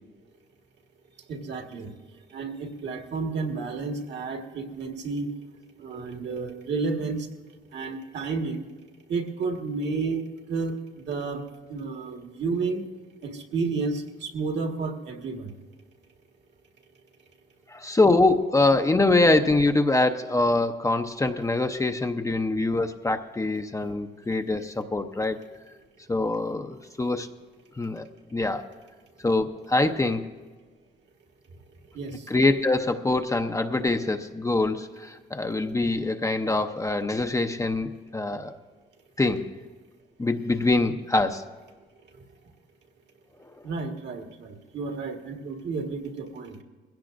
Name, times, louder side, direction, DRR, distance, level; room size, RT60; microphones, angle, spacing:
voice 1, 1.3-1.9 2.3-5.3 5.8-7.3 7.7-8.7 9.1-10.2 10.5-12.9 13.2-15.5 31.9-32.3 42.1-42.2 43.6-46.6, right 4 dB, 60° right, 3 dB, 1.6 m, -31 dB
voice 2, 17.7-25.4 26.1-27.3 27.8-28.1 28.3-28.7 29.2-30.3 32.3-38.5 39.2-39.5 40.2-41.4, left 2 dB, 15° left, 6 dB, 0.7 m, -24 dB
21.0 x 16.5 x 2.6 m, 1.3 s
cardioid pair, 90°, 20 cm